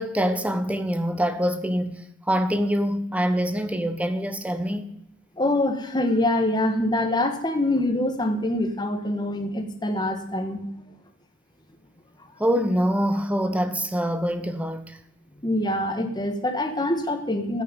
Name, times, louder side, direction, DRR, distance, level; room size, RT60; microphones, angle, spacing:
voice 1, 0.0-2.0 2.3-4.9 12.4-15.0, equal, 5° right, 0.9 m, -25 dB
voice 2, 5.4-10.6 15.4-17.6, left 1 dB, 20° left, 1.6 m, -25 dB
10.5 x 8.9 x 9.2 m
head